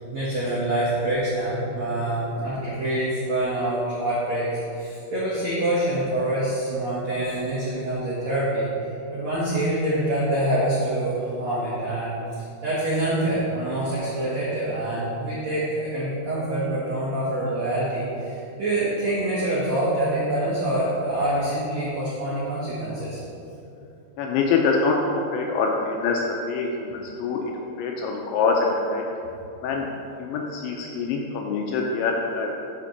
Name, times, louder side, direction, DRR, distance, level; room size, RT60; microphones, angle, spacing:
voice 1, 0.0-8.9 9.1-12.1 12.6-23.2, right 1 dB, 85° right, -9 dB, 1.5 m, -26 dB
voice 2, 24.2-27.4 27.8-29.0 29.6-29.9 30.2-32.5, left 4 dB, 85° left, 0 dB, 2.7 m, -25 dB
9.9 x 4.4 x 6.7 m, 2.7 s
omnidirectional pair, 5.8 m